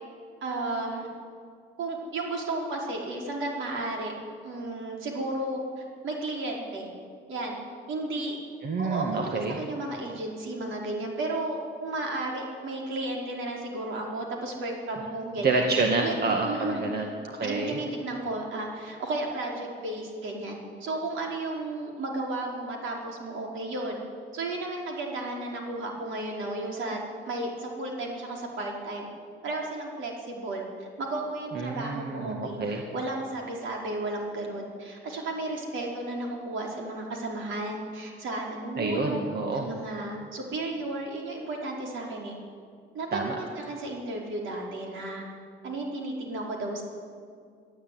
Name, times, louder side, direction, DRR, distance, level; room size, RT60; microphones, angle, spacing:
voice 1, 0.4-1.1 1.8-4.1 4.4-6.9 7.3-7.6 7.9-8.4 8.8-15.6 16.0-16.9 17.4-24.0 24.3-27.0 27.3-29.1 29.4-39.2 39.5-42.3 42.9-45.2 45.6-46.8, right 2 dB, 75° right, -1 dB, 4.8 m, -33 dB
voice 2, 8.6-9.6 15.4-17.8 31.5-32.8 38.8-39.7 43.1-43.4, right 3 dB, 55° right, 2 dB, 2.1 m, -28 dB
23.0 x 12.5 x 9.4 m, 2.3 s
cardioid pair, 90°, 20 cm